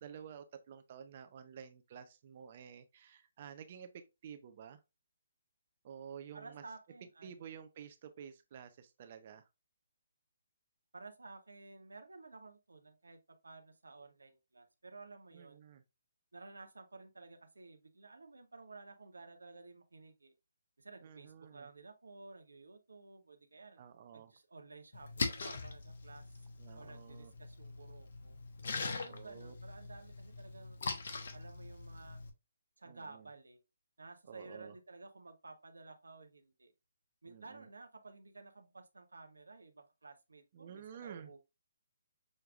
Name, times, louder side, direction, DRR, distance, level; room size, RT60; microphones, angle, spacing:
voice 1, 0.0-4.8 5.8-6.6 7.2-9.4 15.3-15.8 21.0-21.7 23.8-24.3 26.6-27.3 29.1-29.5 32.9-33.2 34.3-34.7 37.2-37.7 40.5-41.3, right 8 dB, 45° right, 0.6 m, -51 dB
voice 2, 6.3-7.6 10.9-15.6 16.3-20.3 20.8-23.8 24.1-26.2 26.7-28.4 28.8-30.8 31.3-32.2 32.8-33.6 34.0-36.7 37.2-41.4, right 3 dB, 80° right, 0.8 m, -54 dB
Splash splatter, 24.9-32.3, left 4 dB, 60° left, 1.0 m, -42 dB
6.4 x 3.3 x 2.4 m
figure-of-eight pair, 140°, 0 cm